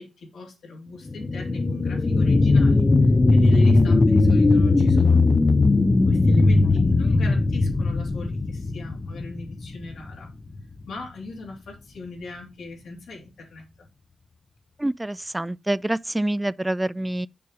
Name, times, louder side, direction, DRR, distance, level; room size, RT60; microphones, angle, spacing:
voice 1, 0.0-2.9 3.3-5.3 6.1-10.3 10.9-13.9, left 3 dB, 85° left, 2.7 m, -39 dB
sound 1, 1.1-10.1 10.6-10.7, left 3 dB, 35° left, 0.7 m, -19 dB
voice 2, 14.8-17.3, right 1 dB, 15° right, 0.4 m, -26 dB
7.1 x 4.8 x 4.8 m
cardioid pair, 55°, 0 cm